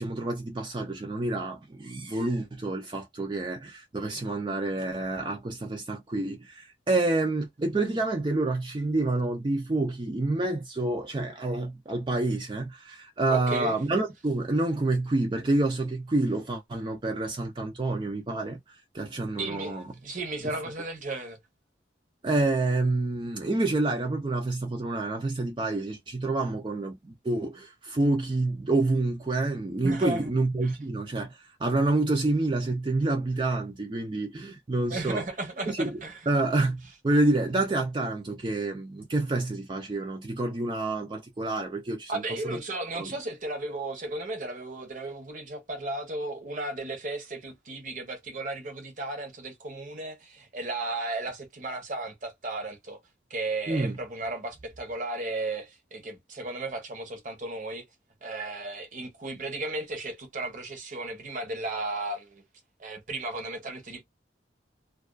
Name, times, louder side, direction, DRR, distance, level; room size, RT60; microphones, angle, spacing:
voice 1, 0.0-19.8 22.2-35.2 35.7-36.0 36.3-42.6 42.9-43.1 53.7-54.0 58.3-58.5, right 2 dB, 25° right, 0.4 m, -28 dB
voice 2, 13.3-13.8 19.4-21.4 29.8-30.2 30.6-30.7 34.9-36.2 42.1-53.0 53.3-57.8 58.2-62.4 62.8-64.0, right 2 dB, 45° right, 0.8 m, -35 dB
2.3 x 2.3 x 2.3 m
head